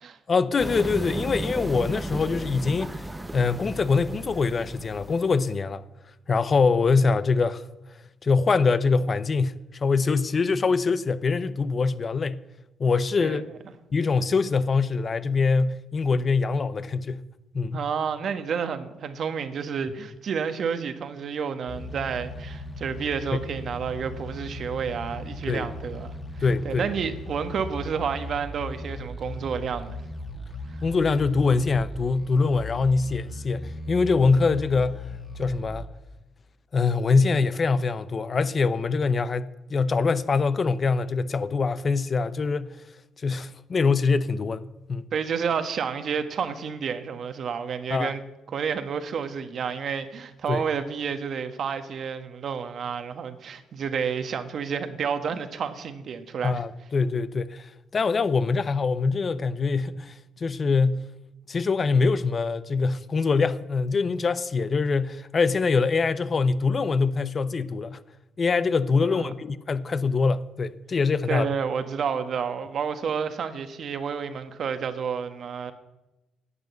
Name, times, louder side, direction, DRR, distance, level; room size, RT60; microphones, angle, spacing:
voice 1, 0.3-3.0 3.3-5.8 6.3-7.6 8.2-12.5 12.8-13.4 13.9-17.3 17.5-17.8 25.5-25.7 26.4-26.9 30.8-35.1 35.4-35.9 36.7-42.8 43.2-45.1 47.9-48.1 50.5-50.6 56.4-61.1 61.5-68.0 68.4-71.5, left 4 dB, 40° left, 0.7 m, -24 dB
sound 1, 0.6-5.6, right 1 dB, 10° right, 0.8 m, -35 dB
voice 2, 13.2-13.5 17.7-26.1 26.6-30.0 45.1-48.2 48.5-56.6 69.1-69.3 71.3-75.7, right 6 dB, 60° right, 1.3 m, -30 dB
sound 2, 21.7-35.9, left 1 dB, 20° left, 1.8 m, -37 dB
11.0 x 8.2 x 9.3 m
cardioid pair, 90°, 0 cm